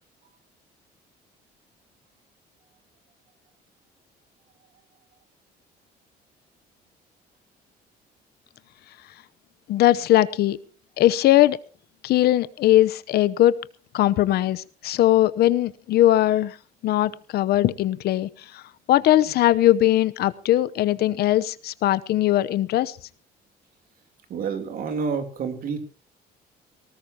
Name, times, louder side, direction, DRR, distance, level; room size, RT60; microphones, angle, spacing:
voice 1, 9.7-10.6 11.0-11.6 12.0-13.6 13.9-16.6 16.8-18.6 18.9-23.0, left 14 dB, 70° left, 16 dB, 0.9 m, -20 dB
voice 2, 24.3-25.8, right 5 dB, 60° right, 6 dB, 3.4 m, -28 dB
19.0 x 19.0 x 2.9 m, 0.37 s
cardioid pair, 110°, 17 cm